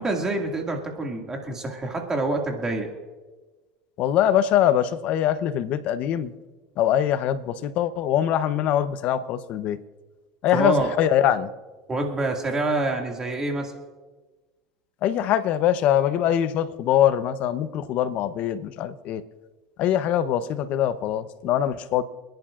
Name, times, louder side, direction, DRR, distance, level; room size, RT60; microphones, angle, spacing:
voice 1, 0.0-2.9 10.5-10.9 11.9-13.7, right 2 dB, 20° right, 1 dB, 2.2 m, -26 dB
voice 2, 4.0-6.3 6.8-9.8 10.4-11.5 15.0-19.2 19.8-22.0, left 10 dB, 55° left, 12 dB, 0.9 m, -23 dB
28.5 x 10.5 x 2.5 m, 1.2 s
supercardioid pair, 100°, 3 cm